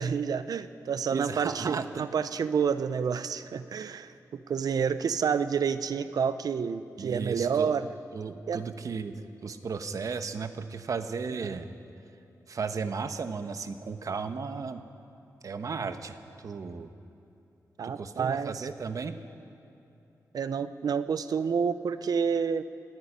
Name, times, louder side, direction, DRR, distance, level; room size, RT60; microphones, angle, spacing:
voice 1, 0.0-7.9 8.5-8.6 11.4-11.6 17.8-18.7 20.3-22.6, right 6 dB, 80° right, 13 dB, 0.7 m, -29 dB
voice 2, 1.1-2.0 7.0-7.7 8.1-11.7 12.5-14.8 15.4-16.9 17.8-19.1, right 5 dB, 60° right, 9 dB, 1.1 m, -35 dB
28.0 x 9.6 x 9.9 m, 2.8 s
wide cardioid pair, 120°, 6 cm